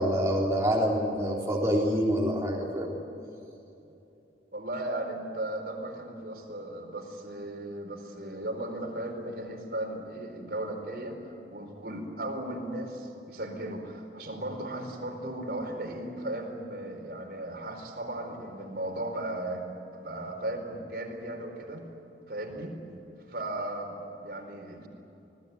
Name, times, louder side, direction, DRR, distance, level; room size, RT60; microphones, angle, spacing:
voice 1, 0.0-2.9, equal, 15° right, -3 dB, 3.5 m, -26 dB
voice 2, 4.5-19.7 19.9-21.8 22.3-22.7 23.3-24.9, right 1 dB, 60° right, 2 dB, 4.5 m, -36 dB
26.5 x 20.0 x 9.6 m, 2.9 s
head